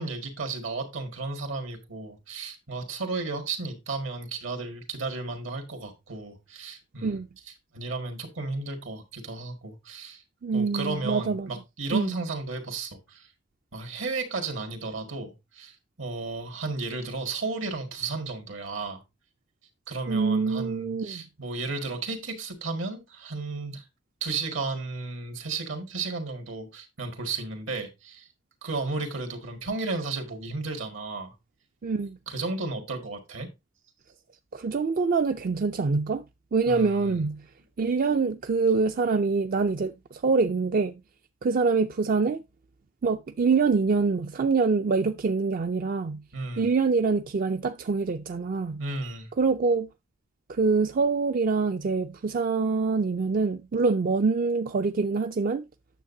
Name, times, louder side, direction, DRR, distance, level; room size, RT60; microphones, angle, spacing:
voice 1, 0.0-7.2 7.7-10.2 10.5-13.3 13.7-19.0 19.9-23.8 24.2-28.3 28.6-31.3 32.3-33.5 36.7-37.2 46.3-46.7 48.8-49.3, right 3 dB, 80° right, 1.9 m, -34 dB
voice 2, 10.4-11.5 11.9-12.1 20.1-21.3 31.8-32.2 34.5-36.2 36.5-37.4 37.8-40.9 41.4-42.4 43.0-46.2 46.6-48.8 49.4-49.9 50.5-55.6, right 4 dB, 45° right, 0.4 m, -25 dB
9.1 x 7.1 x 2.7 m
head